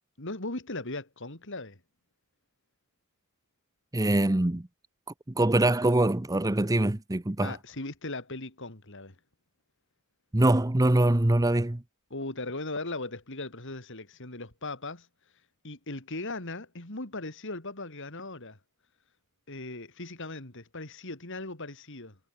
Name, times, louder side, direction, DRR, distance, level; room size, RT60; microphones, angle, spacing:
voice 1, 0.2-1.8 7.4-9.2 12.1-15.1 15.6-18.6 19.5-22.2, left 2 dB, 60° left, 3.7 m, -38 dB
voice 2, 3.9-4.7 5.4-7.5 10.3-11.8, right 1 dB, 15° right, 0.7 m, -23 dB
head